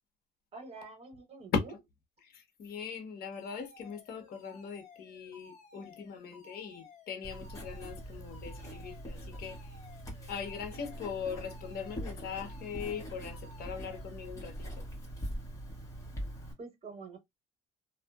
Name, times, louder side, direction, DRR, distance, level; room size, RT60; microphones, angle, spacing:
voice 1, 0.5-1.5 16.6-17.2, right 3 dB, 35° right, 1.6 m, -46 dB
voice 2, 2.2-9.8 10.3-14.9, left 6 dB, 65° left, 1.0 m, -40 dB
Alarm, 3.3-14.2, left 3 dB, 45° left, 1.3 m, -56 dB
Writing, 7.2-16.5, right 1 dB, 20° left, 1.4 m, -43 dB
2.7 x 2.5 x 2.3 m
cardioid pair, 110°, 17 cm